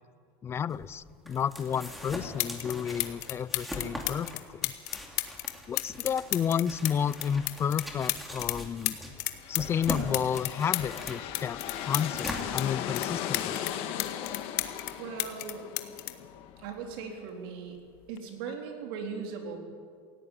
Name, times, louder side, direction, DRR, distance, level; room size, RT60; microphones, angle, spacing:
voice 1, 0.4-4.7 5.7-9.0 9.5-13.6, left 8 dB, 20° left, 19 dB, 0.4 m, -31 dB
sound 1, 0.7-13.2, left 1 dB, ahead, 2.5 m, -42 dB
sound 2, 2.4-2.7 3.0-8.6 8.9-12.7 13.0-14.9 15.2-17.0 18.0-18.2, left 18 dB, 65° left, 1.4 m, -33 dB
sound 3, 9.2-16.9, left 10 dB, 50° left, 1.5 m, -38 dB
voice 2, 15.0-15.7 16.6-17.8 18.1-19.6, right 5 dB, 75° right, 3 dB, 3.8 m, -38 dB
18.0 x 16.5 x 9.1 m, 2.1 s
supercardioid pair, 155°, 12 cm